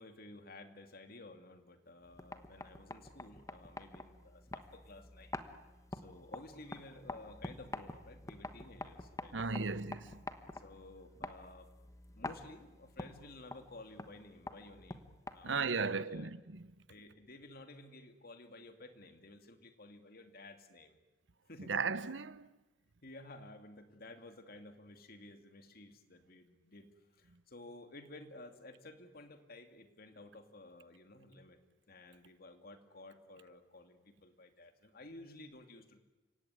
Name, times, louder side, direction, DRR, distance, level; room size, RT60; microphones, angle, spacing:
voice 1, 0.0-5.4 5.9-9.8 10.5-11.7 12.1-15.0 15.3-16.3 16.9-21.0 21.5-21.8 23.0-26.9 27.1-31.6 31.9-36.0, left 2 dB, 55° left, 2.5 m, -54 dB
sound 1, 2.0-15.8, left 2 dB, 20° left, 1.2 m, -48 dB
voice 2, 9.3-10.2 15.4-16.7 21.6-22.5, right 4 dB, 90° right, 0.9 m, -36 dB
29.5 x 17.0 x 9.5 m
head